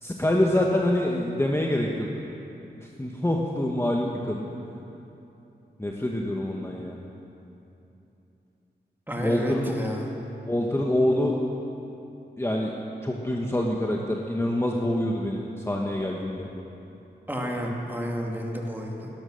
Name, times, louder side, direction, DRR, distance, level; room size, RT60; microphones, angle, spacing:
voice 1, 0.0-2.1 2.8-4.5 5.8-7.0 9.2-9.7 10.5-11.4 12.4-12.7 13.0-16.5, left 1 dB, 15° left, -1 dB, 1.2 m, -26 dB
voice 2, 9.1-10.1 17.3-19.1, equal, 10° right, -1 dB, 2.3 m, -30 dB
16.5 x 12.5 x 6.5 m, 2.9 s
wide cardioid pair, 85°, 18 cm